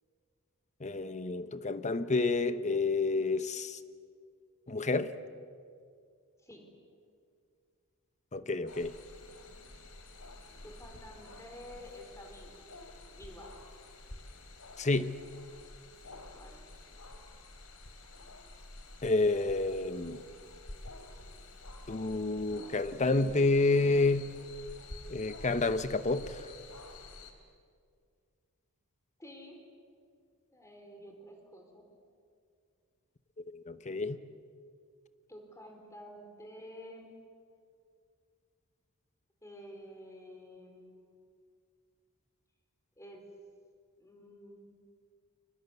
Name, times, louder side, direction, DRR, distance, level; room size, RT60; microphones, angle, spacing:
voice 1, 0.8-3.8 4.7-5.1 8.3-9.0 14.8-15.2 19.0-20.2 21.9-24.3 25.1-26.5 33.4-34.2, left 3 dB, 35° left, 0.9 m, -29 dB
sound 1, 8.7-27.3, left 2 dB, 90° left, 3.3 m, -50 dB
voice 2, 10.6-12.6 13.1-13.5 16.3-16.6 29.2-29.7 30.5-31.8 35.3-37.1 39.4-41.2 43.0-43.2 44.0-44.8, equal, 15° left, 4.5 m, -50 dB
29.0 x 23.5 x 8.2 m
head